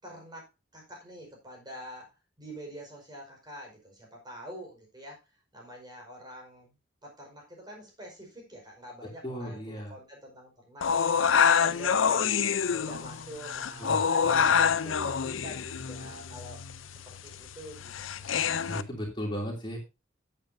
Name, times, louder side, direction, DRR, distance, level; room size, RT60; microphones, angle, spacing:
voice 1, 0.0-5.2 5.5-10.9 11.3-14.5 14.8-16.6 16.9-18.6, equal, 20° right, 1 dB, 5.1 m, -46 dB
voice 2, 9.2-10.0 13.8-14.9 18.7-19.8, equal, 25° left, -1 dB, 3.1 m, -37 dB
sound 1, 10.8-18.8, left 6 dB, 90° left, 0.6 m, -26 dB
13.0 x 9.1 x 2.8 m, 0.26 s
head